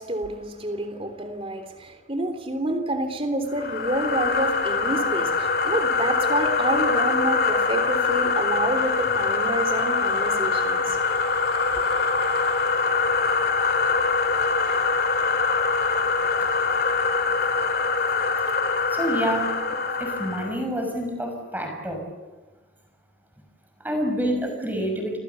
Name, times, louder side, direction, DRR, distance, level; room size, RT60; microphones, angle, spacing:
voice 1, 0.0-11.0, right 1 dB, 30° right, 7 dB, 3.4 m, -28 dB
sound 1, 3.5-20.5, left 4 dB, 55° left, 2.4 m, -23 dB
voice 2, 18.9-19.6 20.0-22.1 23.8-25.2, equal, 10° right, 3 dB, 5.9 m, -27 dB
29.5 x 27.5 x 7.1 m, 1.2 s
head